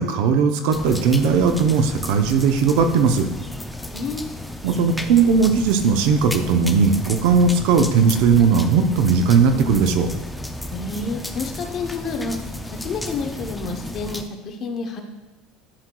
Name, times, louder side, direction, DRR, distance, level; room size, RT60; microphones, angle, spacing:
voice 1, 0.0-3.3 4.6-10.1, right 5 dB, 65° right, 7 dB, 0.6 m, -18 dB
sound 1, 0.7-14.2, left 1 dB, 5° left, 0.3 m, -33 dB
voice 2, 3.9-4.3 10.7-12.5 12.8-15.0, left 4 dB, 35° left, 4 dB, 0.8 m, -29 dB
11.5 x 4.5 x 2.3 m, 1.2 s
cardioid pair, 165°, 0 cm